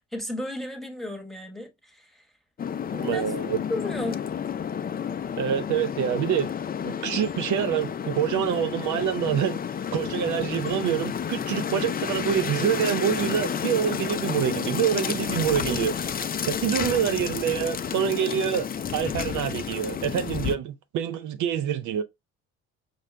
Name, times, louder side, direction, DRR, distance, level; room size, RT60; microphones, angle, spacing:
voice 1, 0.1-2.3 3.1-3.2 3.7-4.2, left 1 dB, ahead, 1.1 m, -33 dB
sound 1, 2.6-20.5, left 8 dB, 30° left, 0.4 m, -31 dB
voice 2, 2.9-3.6 5.4-6.5 6.8-9.6 9.9-22.0, right 9 dB, 60° right, 0.6 m, -26 dB
5.1 x 2.3 x 3.2 m
supercardioid pair, 65°, 33 cm